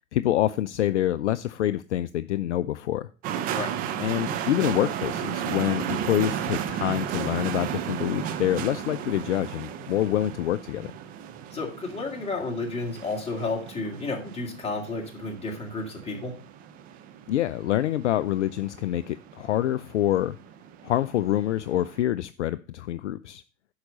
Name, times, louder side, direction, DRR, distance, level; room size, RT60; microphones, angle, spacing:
voice 1, 0.1-3.1 4.0-10.9 17.3-20.4 20.8-23.4, left 13 dB, 60° left, 0.5 m, -26 dB
sound 1, 3.2-22.0, right 9 dB, 20° right, 0.5 m, -34 dB
voice 2, 11.5-16.3, left 3 dB, 15° left, 2.1 m, -32 dB
10.5 x 4.8 x 5.1 m
figure-of-eight pair, 100°, 41 cm